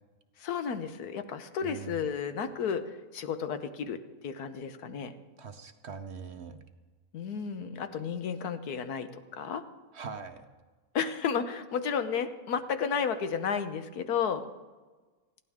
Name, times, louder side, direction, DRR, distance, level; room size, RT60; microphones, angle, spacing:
voice 1, 0.4-5.1 7.1-9.6 10.9-14.4, left 6 dB, 85° left, 10 dB, 1.4 m, -32 dB
voice 2, 1.6-2.1 5.4-6.6 9.9-10.5, right 5 dB, 50° right, 7 dB, 1.0 m, -42 dB
20.5 x 15.0 x 3.6 m, 1.3 s
omnidirectional pair, 1.6 m